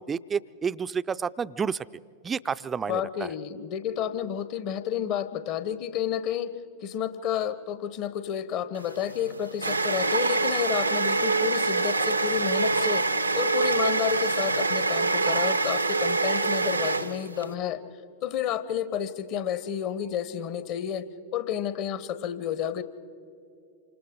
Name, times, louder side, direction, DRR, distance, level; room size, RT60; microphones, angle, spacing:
voice 1, 0.0-1.8 2.2-3.0, right 6 dB, 20° right, 15 dB, 0.4 m, -30 dB
voice 2, 2.9-13.1 13.3-17.8 18.2-21.1 21.3-22.8, left 9 dB, 40° left, 12 dB, 1.1 m, -30 dB
sound 1, 8.8-17.5, right 3 dB, 85° right, 0.7 m, -25 dB
28.5 x 26.0 x 3.8 m, 2.6 s
figure-of-eight pair, 90°, 0 cm